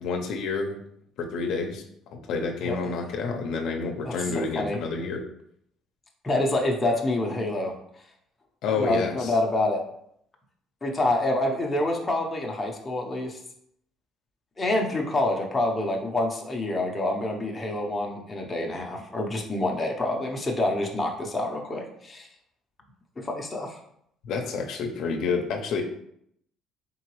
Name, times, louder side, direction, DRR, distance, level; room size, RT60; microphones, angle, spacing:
voice 1, 0.0-0.8 1.2-1.8 2.1-5.2 8.6-9.3 24.2-25.8, left 4 dB, 65° left, 3 dB, 0.6 m, -29 dB
voice 2, 4.0-4.8 6.2-7.7 8.8-9.8 10.8-13.4 14.6-22.3 23.2-23.8, left 2 dB, 15° left, 0 dB, 0.7 m, -27 dB
3.8 x 3.8 x 3.0 m, 0.71 s
cardioid pair, 130°, 0 cm